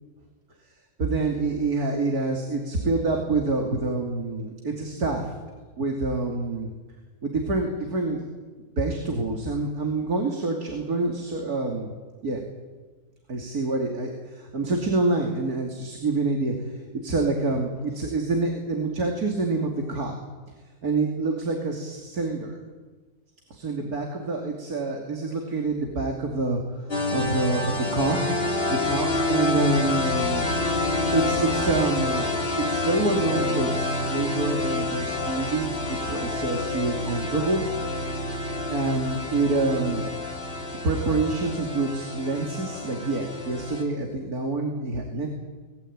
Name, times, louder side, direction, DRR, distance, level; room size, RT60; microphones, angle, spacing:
voice 1, 1.0-5.3 5.8-6.7 7.2-8.2 8.8-11.9 12.2-12.4 13.3-20.1 20.8-22.6 23.5-28.2 28.7-30.5 31.1-32.3 32.6-37.6 38.7-40.2 40.8-45.3, right 3 dB, 85° right, 2 dB, 3.2 m, -27 dB
sound 1, 26.9-43.8, left 2 dB, 40° left, 3.4 m, -28 dB
25.0 x 20.0 x 8.9 m, 1.4 s
omnidirectional pair, 1.6 m